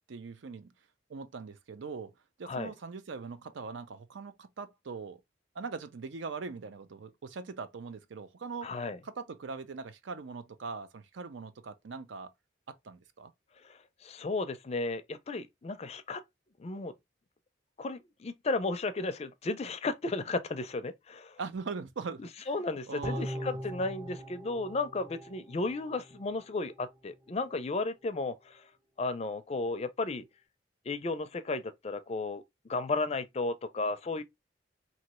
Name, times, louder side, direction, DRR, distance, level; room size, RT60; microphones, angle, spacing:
voice 1, 0.1-0.7 1.1-2.1 2.4-5.2 5.5-8.7 9.0-12.3 12.7-13.3 21.4-22.5 22.9-23.6, right 4 dB, 80° right, 0.5 m, -41 dB
voice 2, 8.6-9.0 13.6-16.2 16.6-16.9 17.8-21.4 22.5-28.7 29.0-30.2 30.9-32.4 32.7-34.2, left 3 dB, 35° left, 0.4 m, -34 dB
sound 1, 23.0-26.4 26.7-26.8, equal, 25° right, 0.5 m, -40 dB
3.1 x 2.7 x 2.9 m
head